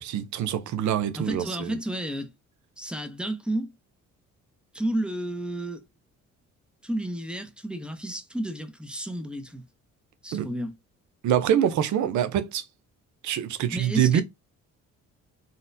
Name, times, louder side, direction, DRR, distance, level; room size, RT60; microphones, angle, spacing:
voice 1, 0.0-1.8 10.3-10.5 11.2-12.6 13.2-14.2, right 10 dB, 70° right, 0.6 m, -25 dB
voice 2, 1.1-2.3 2.8-3.7 4.7-5.8 6.8-9.7 10.2-10.7 13.7-14.2, right 1 dB, 5° right, 0.6 m, -31 dB
3.9 x 2.1 x 2.6 m
cardioid pair, 90°, 30 cm